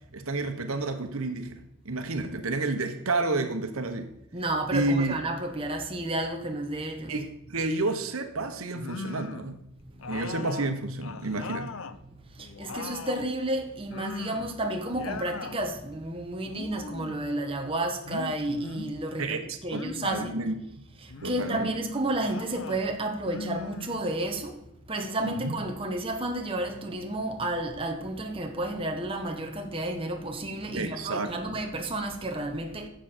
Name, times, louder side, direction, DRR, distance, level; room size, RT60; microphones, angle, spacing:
voice 1, 0.1-1.5 1.8-4.1 4.7-5.1 7.1-9.6 10.1-11.7 19.2-20.8 21.2-21.7 25.2-25.5 30.7-31.6, right 2 dB, 85° right, 1.1 m, -30 dB
voice 2, 4.3-7.1 10.0-10.2 12.1-19.3 19.6-20.4 21.0-24.6 24.9-32.9, right 1 dB, 25° right, 1.1 m, -31 dB
sound 1, 8.7-9.5 10.0-12.0 12.4-13.3 13.9-14.6 14.9-15.6 16.4-17.2 18.0-19.0 19.7-20.4 21.1-21.7 22.2-22.8 23.2-24.3, left 4 dB, 70° left, 0.6 m, -39 dB
11.5 x 7.5 x 4.4 m
head